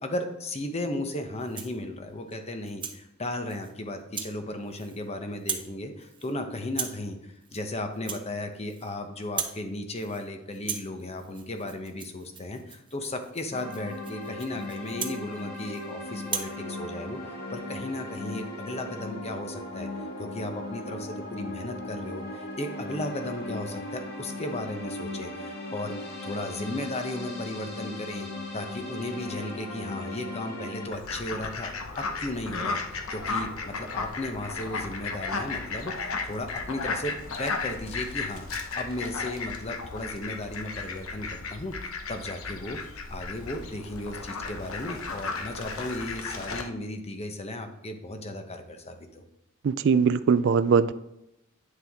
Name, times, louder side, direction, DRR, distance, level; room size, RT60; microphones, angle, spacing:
voice 1, 0.0-19.9 20.2-28.3 28.5-32.8 33.1-38.5 38.8-42.8 43.1-49.2, left 1 dB, 30° left, 6 dB, 1.0 m, -35 dB
Rattle (instrument), 1.4-1.8 2.3-3.0 3.5-3.7 4.1-4.4 4.7-5.1 5.3-5.7 6.0-6.3 6.7-7.1 7.4-7.7 7.9-8.9 9.2-9.6 9.9-10.3 10.5-15.9 16.2-16.6, right 6 dB, 25° right, 0.8 m, -38 dB
sound 1, 13.5-30.9, left 2 dB, 50° left, 1.6 m, -38 dB
Fowl, 30.9-46.6, left 4 dB, 90° left, 1.0 m, -35 dB
voice 2, 49.6-50.9, right 6 dB, 60° right, 13 dB, 0.4 m, -21 dB
9.5 x 6.7 x 3.6 m, 0.84 s
head